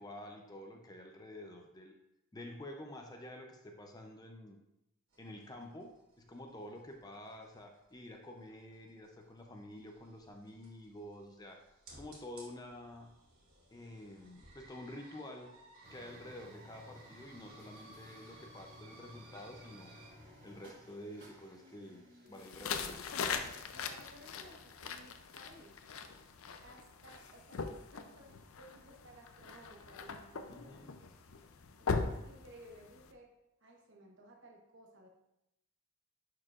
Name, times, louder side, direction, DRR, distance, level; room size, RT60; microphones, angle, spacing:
voice 1, 0.0-2.0 2.3-4.6 5.2-11.6 11.9-13.1 13.7-15.5 15.9-20.0 20.4-23.1 30.5-30.9, left 1 dB, 15° left, 3 dB, 0.5 m, -49 dB
sound 1, 5.1-20.1, right 2 dB, 85° right, 2.4 m, -59 dB
sound 2, 15.8-23.4, left 1 dB, 40° right, 2.5 m, -57 dB
sound 3, 22.4-33.1, left 5 dB, 70° left, 0.5 m, -41 dB
voice 2, 22.6-23.0 23.7-25.8 26.6-30.9 31.8-33.3 33.6-35.1, right 1 dB, 55° right, 1 dB, 1.2 m, -58 dB
10.5 x 4.7 x 2.5 m, 0.86 s
head